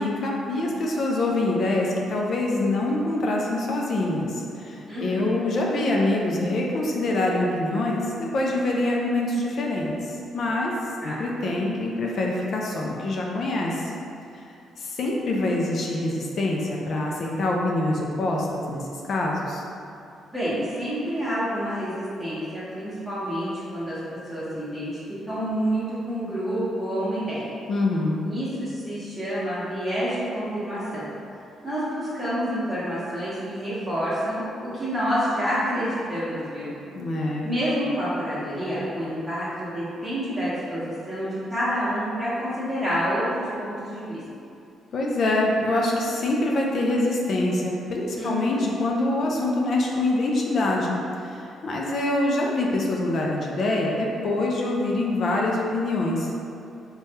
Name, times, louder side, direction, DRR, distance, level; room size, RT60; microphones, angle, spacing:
voice 1, 0.0-8.1 8.3-10.7 11.0-13.9 14.8-19.6 27.7-28.2 36.9-37.5 44.9-56.5, left 2 dB, 60° left, -2 dB, 0.3 m, -25 dB
voice 2, 4.9-5.4 11.0-11.2 20.3-27.5 28.3-31.1 31.6-36.7 37.4-44.2 48.2-48.7, equal, 10° right, -12 dB, 0.9 m, -28 dB
3.2 x 2.2 x 2.8 m, 2.6 s
cardioid pair, 90°, 0 cm